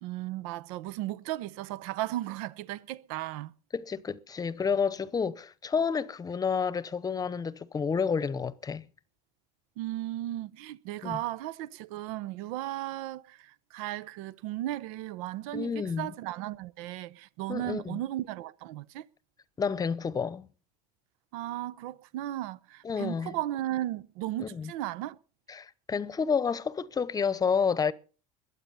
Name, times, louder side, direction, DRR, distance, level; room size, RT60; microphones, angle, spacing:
voice 1, 0.0-3.5 9.8-19.0 21.3-25.2, right 14 dB, 85° right, 0.8 m, -35 dB
voice 2, 3.7-8.8 11.0-11.2 15.5-16.1 17.5-18.0 19.6-20.5 22.8-23.3 24.4-24.7 25.5-27.9, left 6 dB, 20° left, 0.8 m, -30 dB
21.5 x 8.2 x 5.6 m
cardioid pair, 125°, 17 cm